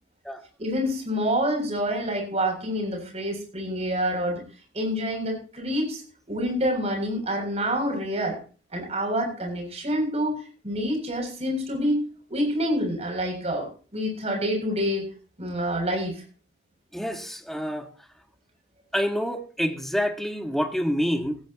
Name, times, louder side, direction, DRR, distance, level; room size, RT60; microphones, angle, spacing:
voice 1, 0.6-4.4 4.7-6.0 6.3-8.4 8.7-12.0 12.3-15.1 15.4-16.2, equal, 35° right, 7.2 m, -27 dB
voice 2, 16.9-17.9 18.9-21.4, equal, ahead, 1.6 m, -27 dB
17.0 x 15.5 x 3.0 m
head